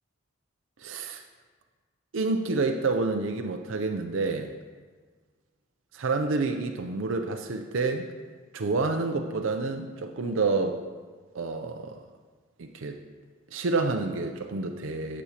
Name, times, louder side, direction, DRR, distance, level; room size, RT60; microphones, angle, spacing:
voice 1, 0.8-1.2 2.1-4.5 5.9-8.1 8.5-10.8 11.3-12.0 12.6-13.0 13.5-15.2, right 3 dB, 75° right, 5 dB, 0.5 m, -28 dB
15.0 x 6.1 x 2.9 m, 1.5 s
head